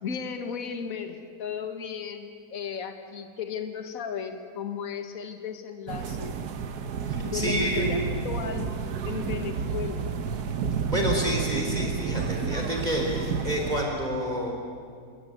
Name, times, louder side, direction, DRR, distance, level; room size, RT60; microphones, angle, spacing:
voice 1, 0.0-6.4 7.2-8.0 8.2-8.7 9.0-10.1, left 7 dB, 60° left, 7 dB, 1.8 m, -35 dB
sound 1, 5.9-13.8, right 6 dB, 75° right, 1.6 m, -30 dB
voice 2, 7.1-7.9 10.9-14.5, equal, 25° right, 0 dB, 4.0 m, -29 dB
28.5 x 14.5 x 9.3 m, 2.1 s
omnidirectional pair, 1.7 m